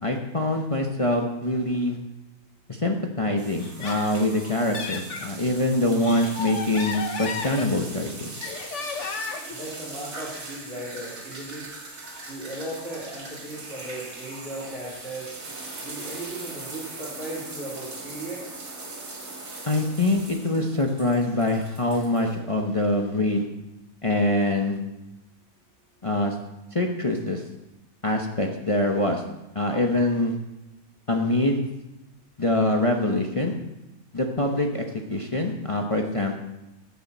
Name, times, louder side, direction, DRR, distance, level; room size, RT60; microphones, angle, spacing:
voice 1, 0.0-2.0 2.7-8.3 19.7-23.5 24.0-24.8 26.0-26.4 26.7-27.4 28.0-29.2 29.5-30.3 31.1-31.6 32.4-33.5 34.1-34.8 35.1-36.4, left 1 dB, 30° left, 2 dB, 0.8 m, -24 dB
sound 1, 3.4-22.4, right 2 dB, 65° right, 2.4 m, -40 dB
Laughter, 3.6-5.3 5.8-8.0 8.4-9.6, left 5 dB, 55° left, 1.2 m, -34 dB
voice 2, 9.5-11.7 12.3-15.3 15.8-18.4, right 1 dB, 40° right, -9 dB, 3.8 m, -36 dB
15.0 x 7.4 x 4.2 m, 0.94 s
omnidirectional pair, 1.6 m